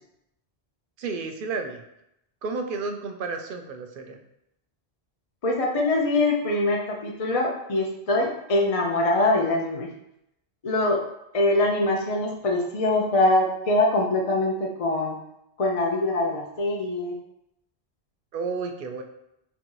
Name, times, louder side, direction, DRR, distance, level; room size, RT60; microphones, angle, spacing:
voice 1, 1.0-1.8 2.4-4.2 18.3-19.0, right 4 dB, 60° right, 5 dB, 0.7 m, -31 dB
voice 2, 5.4-9.9 10.6-11.1 11.3-15.1 15.6-17.2, left 2 dB, 45° left, -1 dB, 0.5 m, -23 dB
3.5 x 2.6 x 4.5 m, 0.82 s
omnidirectional pair, 1.1 m